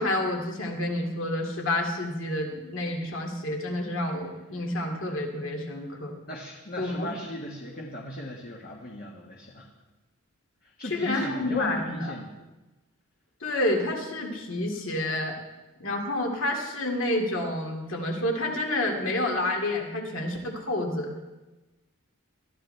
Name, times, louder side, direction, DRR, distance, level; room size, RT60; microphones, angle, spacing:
voice 1, 0.0-6.2 6.8-7.1 10.9-12.1 13.4-15.3 15.8-21.1, left 1 dB, 60° left, 1 dB, 2.4 m, -29 dB
voice 2, 6.3-9.7 10.6-12.3, left 1 dB, 45° left, -1 dB, 1.5 m, -36 dB
20.5 x 13.5 x 3.4 m, 1.1 s
head